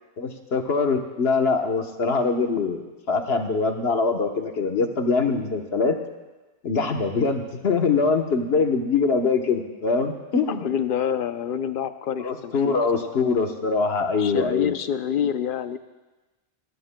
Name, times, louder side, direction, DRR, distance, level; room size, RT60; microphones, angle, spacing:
voice 1, 0.2-6.0 6.6-10.6 12.2-14.7, left 4 dB, 75° left, 4 dB, 1.3 m, -23 dB
voice 2, 10.5-13.1 14.2-15.8, left 8 dB, 60° left, 11 dB, 0.7 m, -27 dB
21.0 x 15.0 x 2.2 m, 1.2 s
omnidirectional pair, 1.1 m